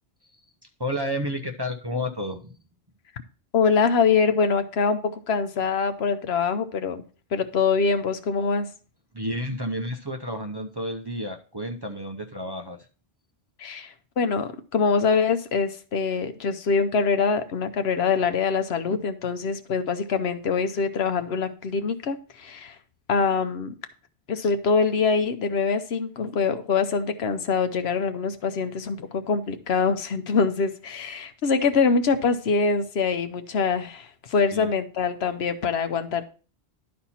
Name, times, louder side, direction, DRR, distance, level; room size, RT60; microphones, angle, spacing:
voice 1, 0.8-2.6 9.1-12.8 34.5-34.7, equal, 25° right, 2 dB, 0.6 m, -31 dB
voice 2, 3.5-7.0 7.3-8.7 13.6-22.7 23.1-23.7 24.3-36.2, left 5 dB, 70° left, 9 dB, 1.0 m, -24 dB
11.5 x 4.3 x 4.2 m, 0.37 s
omnidirectional pair, 1.1 m